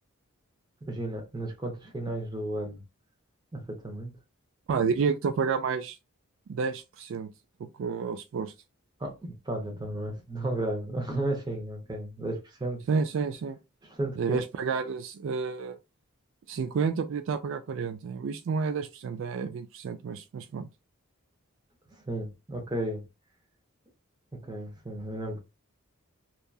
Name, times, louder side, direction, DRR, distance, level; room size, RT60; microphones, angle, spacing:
voice 1, 0.8-2.8 3.5-4.1 9.0-12.8 13.8-14.4 22.1-23.0 24.3-25.4, right 1 dB, 20° right, 0.7 m, -33 dB
voice 2, 4.7-6.0 6.5-7.3 7.8-8.5 12.9-13.6 14.2-15.7 16.5-20.7, right 5 dB, 65° right, 0.3 m, -30 dB
2.8 x 2.3 x 2.3 m
head